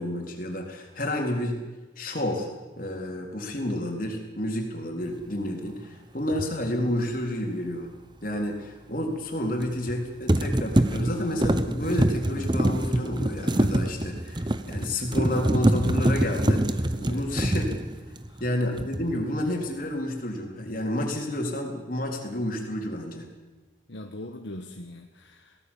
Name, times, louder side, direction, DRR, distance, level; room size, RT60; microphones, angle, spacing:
voice 1, 0.0-1.6 2.0-2.5 2.8-7.9 8.2-17.7 18.4-23.3, left 1 dB, 45° left, 2 dB, 4.0 m, -30 dB
sound 1, 6.3-6.5 9.6-10.0 10.3-18.5 18.8-19.2, right 1 dB, 25° right, 1.0 m, -25 dB
voice 2, 16.9-17.3 18.3-18.4 23.9-25.6, left 1 dB, 65° left, 4 dB, 1.4 m, -41 dB
22.5 x 18.0 x 7.2 m, 1.2 s
head